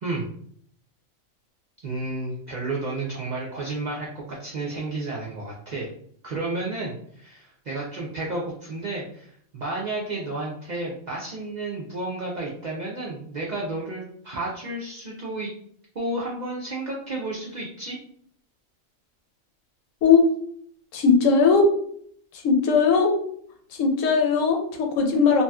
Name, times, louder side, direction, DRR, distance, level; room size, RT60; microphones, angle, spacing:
voice 1, 1.8-5.9 6.2-15.5 15.9-18.0, right 2 dB, 60° right, -4 dB, 0.4 m, -31 dB
voice 2, 20.9-21.6 22.4-23.1 23.8-25.4, left 5 dB, 75° left, 3 dB, 1.0 m, -19 dB
3.0 x 2.7 x 2.3 m, 0.63 s
omnidirectional pair, 1.4 m